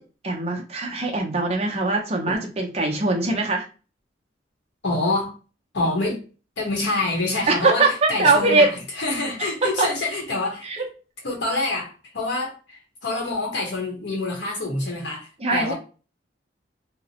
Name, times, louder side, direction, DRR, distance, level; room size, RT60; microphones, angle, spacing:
voice 1, 0.2-3.7 7.5-8.7 9.4-9.5 9.8-9.9 10.6-10.8 15.4-15.7, right 3 dB, 35° right, 0.6 m, -21 dB
voice 2, 4.8-5.3 5.7-6.2 6.6-10.7 11.2-15.7, left 2 dB, 65° left, 0.9 m, -26 dB
2.8 x 2.0 x 2.8 m
head